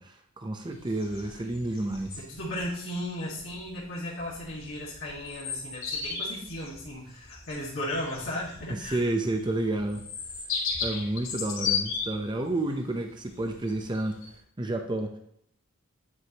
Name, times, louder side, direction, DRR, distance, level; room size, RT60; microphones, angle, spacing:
voice 1, 0.0-2.2 8.9-10.0 10.8-14.1 14.6-15.2, right 2 dB, 25° right, 4 dB, 0.7 m, -30 dB
sound 1, 0.6-14.3, left 5 dB, 85° left, 2.2 m, -36 dB
voice 2, 2.2-9.1, left 1 dB, 70° left, -7 dB, 1.8 m, -35 dB
9.6 x 4.8 x 2.9 m, 0.70 s
head